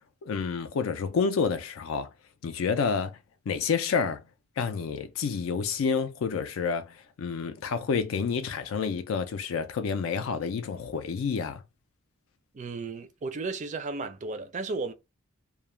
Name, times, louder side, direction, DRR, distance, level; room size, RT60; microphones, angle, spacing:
voice 1, 0.2-2.1 2.4-3.2 3.5-4.2 4.6-11.6, left 5 dB, 75° left, 0.4 m, -29 dB
voice 2, 12.5-14.9, right 3 dB, 35° right, 0.4 m, -34 dB
2.3 x 2.0 x 3.0 m
head